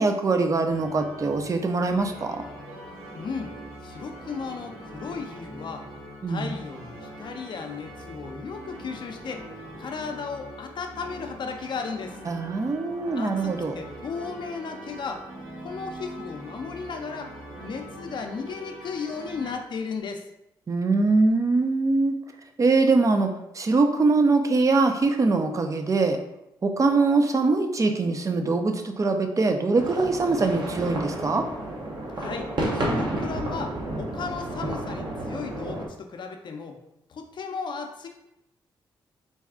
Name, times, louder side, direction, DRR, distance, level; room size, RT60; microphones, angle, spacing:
voice 1, 0.0-2.4 6.2-6.5 12.3-13.8 20.7-22.1 22.6-23.3 23.5-26.2 26.6-31.4, right 3 dB, 35° right, 6 dB, 0.5 m, -22 dB
sound 1, 0.6-19.5, right 1 dB, 90° right, 1.5 m, -42 dB
voice 2, 3.1-3.5 3.8-5.9 6.3-9.5 9.8-12.2 13.2-15.3 15.6-17.3 17.6-20.2 32.1-36.8 37.1-38.1, left 5 dB, 55° left, 4 dB, 0.6 m, -35 dB
sound 2, 29.8-35.9, right 1 dB, 55° right, 0.9 m, -31 dB
4.1 x 2.3 x 3.6 m, 0.85 s
cardioid pair, 65°, 9 cm